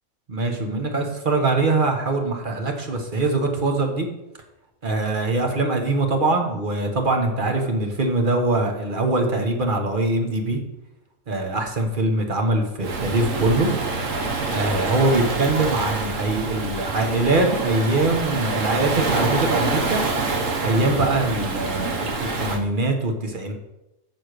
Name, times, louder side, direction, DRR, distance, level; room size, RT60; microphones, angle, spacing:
voice 1, 0.3-4.1 4.8-10.6 11.3-13.7 14.5-20.0 20.6-23.5, right 2 dB, 35° right, 3 dB, 1.3 m, -23 dB
Waves surf, 12.8-22.6, right 3 dB, 60° right, 1.4 m, -26 dB
6.8 x 6.3 x 6.6 m, 0.94 s
omnidirectional pair, 1.6 m